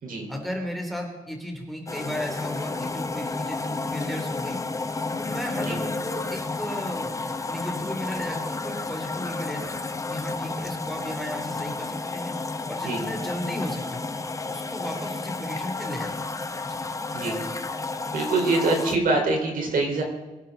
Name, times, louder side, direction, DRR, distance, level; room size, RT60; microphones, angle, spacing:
voice 1, 0.3-4.6 5.2-7.1 7.5-9.7 10.1-12.3 12.7-14.0 14.5-16.2 16.6-16.8, equal, ahead, 2 dB, 3.2 m, -34 dB
sound 1, 1.9-19.0, left 3 dB, 20° left, 1.0 m, -31 dB
voice 2, 18.1-20.0, right 3 dB, 70° right, 1 dB, 4.7 m, -24 dB
23.0 x 11.5 x 4.0 m, 1.1 s
wide cardioid pair, 135°, 15 cm